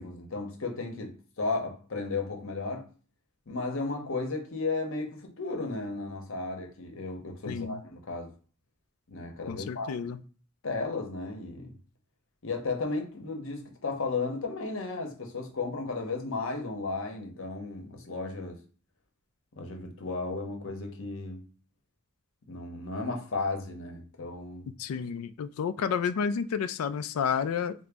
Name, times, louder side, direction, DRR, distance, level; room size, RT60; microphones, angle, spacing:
voice 1, 0.0-2.9 3.5-8.3 9.1-10.0 10.6-11.8 12.4-18.6 19.6-21.5 22.5-24.7, left 3 dB, 65° left, 0.8 m, -34 dB
voice 2, 7.5-7.8 9.5-10.2 24.8-27.7, left 7 dB, 90° left, 0.3 m, -30 dB
3.8 x 2.0 x 3.4 m
head